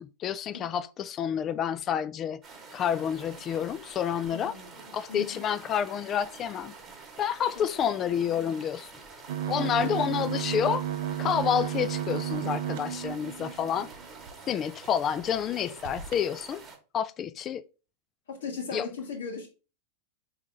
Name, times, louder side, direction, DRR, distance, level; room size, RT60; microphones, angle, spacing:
voice 1, 0.0-2.4 2.7-4.6 4.9-6.7 7.2-8.9 9.5-10.8 11.2-13.9 14.5-16.6 16.9-17.6 18.7-18.8, left 8 dB, 30° left, 0.3 m, -29 dB
sound 1, 2.4-16.8, right 4 dB, 20° right, 1.2 m, -48 dB
voice 2, 4.3-5.4 7.6-7.7 9.6-9.9 12.8-13.0 18.3-19.5, left 5 dB, 65° left, 1.2 m, -38 dB
sound 2, 9.3-14.3 14.9-15.0 15.2-15.4 15.8-16.2, right 10 dB, 55° right, 0.4 m, -33 dB
4.5 x 3.1 x 3.6 m
figure-of-eight pair, 90°, 0 cm